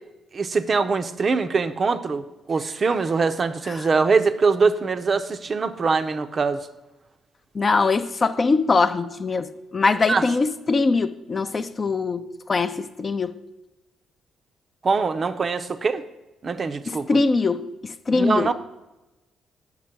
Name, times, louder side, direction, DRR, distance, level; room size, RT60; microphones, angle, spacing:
voice 1, 0.3-6.7 10.1-10.2 14.8-16.0 16.4-17.1 18.1-18.5, right 4 dB, 40° right, 0.5 m, -23 dB
voice 2, 7.6-13.3 16.9-17.7 18.1-18.5, left 4 dB, 35° left, 0.5 m, -22 dB
7.6 x 6.0 x 5.8 m
cardioid pair, 90°, 0 cm